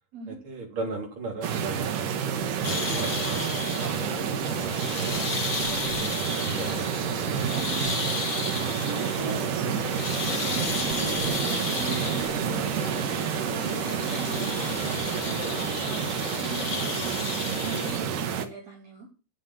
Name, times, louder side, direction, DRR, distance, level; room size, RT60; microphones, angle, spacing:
voice 1, 0.3-2.1 2.6-6.9 18.0-18.2, right 3 dB, 40° right, 4.4 m, -38 dB
sound 1, 1.4-18.5, right 8 dB, 80° right, 3.0 m, -29 dB
sound 2, 2.6-18.0, left 4 dB, 40° left, 1.1 m, -33 dB
voice 2, 7.5-19.1, right 4 dB, 55° right, 4.2 m, -41 dB
9.8 x 8.5 x 7.5 m
omnidirectional pair, 3.7 m